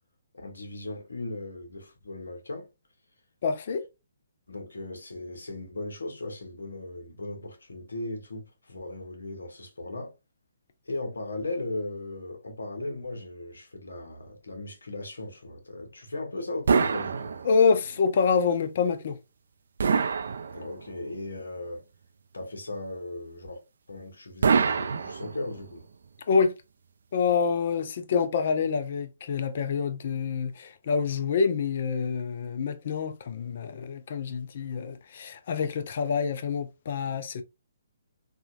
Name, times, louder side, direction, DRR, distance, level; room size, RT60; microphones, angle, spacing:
voice 1, 0.3-2.7 4.5-10.1 10.9-17.3 20.5-21.8 22.3-23.6 23.9-25.8, left 2 dB, 80° left, 1.0 m, -37 dB
voice 2, 3.4-3.8 17.4-19.2 26.3-26.5 27.1-37.4, left 5 dB, 55° left, 0.5 m, -26 dB
sound 1, 16.7-17.9 19.8-21.0 24.4-25.7, right 5 dB, 70° right, 0.4 m, -25 dB
3.6 x 2.3 x 2.5 m
hypercardioid pair, 140°, 0 cm